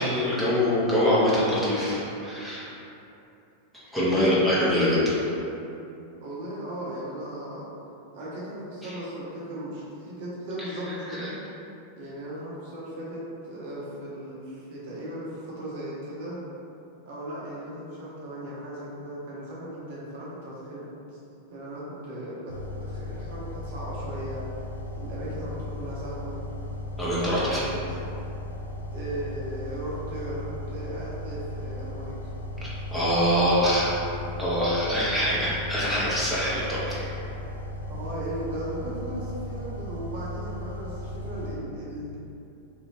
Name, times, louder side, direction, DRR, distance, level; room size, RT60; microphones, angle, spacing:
voice 1, 0.0-2.7 3.7-5.2 8.8-8.9 11.1-11.3 27.0-27.7 32.9-33.9 34.4-37.0, equal, ahead, -10 dB, 1.0 m, -24 dB
voice 2, 4.1-4.5 6.2-7.7 8.1-11.4 12.0-16.4 17.0-20.9 21.5-24.4 24.9-26.4 27.2-27.8 28.9-32.2 37.9-42.2, right 1 dB, 55° right, -7 dB, 0.7 m, -37 dB
sound 1, 22.5-41.6, left 1 dB, 80° left, 0.4 m, -36 dB
3.4 x 2.7 x 2.9 m, 2.8 s
figure-of-eight pair, 90°, 0 cm